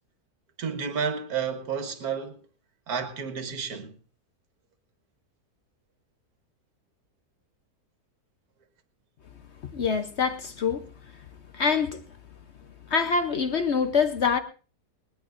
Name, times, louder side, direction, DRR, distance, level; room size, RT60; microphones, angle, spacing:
voice 1, 0.6-2.4 2.9-3.9, right 6 dB, 70° right, 1.8 m, -31 dB
voice 2, 9.7-10.8 11.5-12.0 12.9-14.4, left 5 dB, 50° left, 0.9 m, -25 dB
20.0 x 18.5 x 2.5 m
omnidirectional pair, 1.7 m